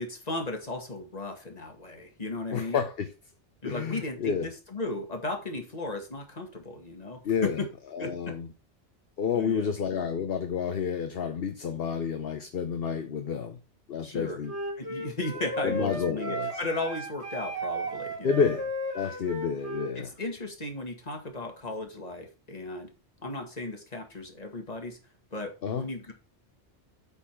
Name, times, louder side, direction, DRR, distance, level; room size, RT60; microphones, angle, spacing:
voice 1, 0.0-2.8 3.6-7.7 8.0-8.3 9.3-9.7 14.0-14.4 14.8-18.5 20.0-22.9 23.2-25.0 25.3-26.1, left 2 dB, 35° left, 2.0 m, -35 dB
voice 2, 2.5-3.1 3.6-4.5 7.2-7.6 7.9-8.5 9.2-13.6 13.9-14.5 15.6-16.5 18.2-20.1 25.6-25.9, left 6 dB, 55° left, 1.0 m, -30 dB
Wind instrument woodwind instrument, 14.4-19.9, right 1 dB, 70° right, 3.0 m, -35 dB
8.3 x 5.6 x 5.9 m
omnidirectional pair, 1.2 m